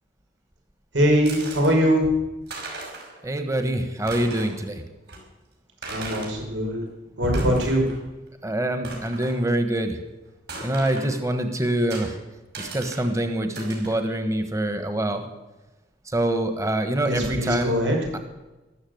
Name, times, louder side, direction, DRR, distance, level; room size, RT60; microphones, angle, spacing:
voice 1, 0.9-2.1 5.9-6.8 7.2-7.9 17.0-18.0, equal, 90° right, 1 dB, 5.6 m, -22 dB
sound 1, 1.3-1.7 2.2-2.3 2.5-3.2 3.5-3.6 4.0-4.6 5.1-5.2 5.8-6.4 7.1-8.0 8.3-8.4 8.8-9.4 10.5-11.1 11.9-12.1 12.5-13.1 13.6-14.0, right 2 dB, 60° right, 5.6 m, -36 dB
voice 2, 3.2-4.8 8.4-10.0 10.6-12.2 12.6-15.2 16.0-17.8, right 1 dB, 15° right, 7 dB, 1.4 m, -25 dB
14.5 x 12.5 x 8.0 m, 1.1 s
head